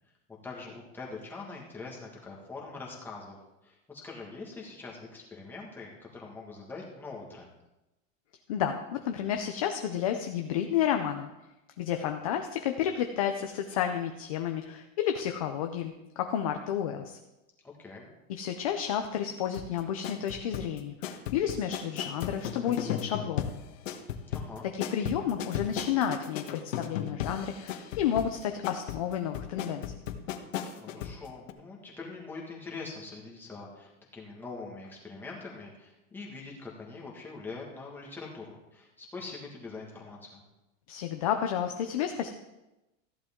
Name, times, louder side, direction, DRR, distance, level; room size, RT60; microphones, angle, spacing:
voice 1, 0.4-3.4 3.6-7.5 17.6-18.1 24.3-24.7 30.8-40.4, left 3 dB, 5° left, -3 dB, 1.5 m, -43 dB
voice 2, 8.5-11.3 11.8-17.2 18.3-23.5 24.7-29.8 40.9-42.3, left 9 dB, 30° left, 5 dB, 0.4 m, -31 dB
sound 1, 19.5-31.2 31.5-31.6, left 9 dB, 70° left, 1.2 m, -36 dB
14.5 x 10.5 x 3.6 m, 0.98 s
supercardioid pair, 180°, 39 cm